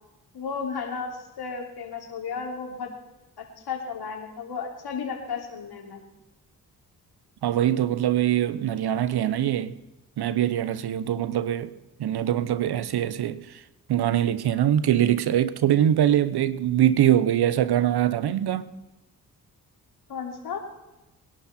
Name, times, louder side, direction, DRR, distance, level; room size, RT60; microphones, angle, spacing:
voice 1, 0.3-2.9 3.4-6.0 20.1-20.6, left 5 dB, 70° left, 3.1 m, -34 dB
voice 2, 7.4-9.7 10.2-11.7 12.0-13.6 13.9-18.7, right 11 dB, 75° right, 1.0 m, -23 dB
21.5 x 11.5 x 4.4 m
supercardioid pair, 45°, 39 cm